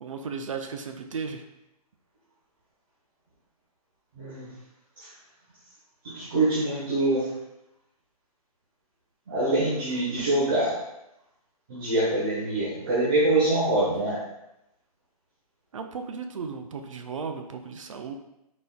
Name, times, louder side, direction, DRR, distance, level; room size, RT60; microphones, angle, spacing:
voice 1, 0.0-1.4 15.7-18.1, right 5 dB, 55° right, 6 dB, 0.4 m, -35 dB
voice 2, 4.1-4.5 5.0-5.1 6.0-7.3 9.3-10.8 11.7-14.2, right 2 dB, 35° right, -8 dB, 0.8 m, -25 dB
4.1 x 3.4 x 2.2 m, 0.87 s
hypercardioid pair, 165°, 20 cm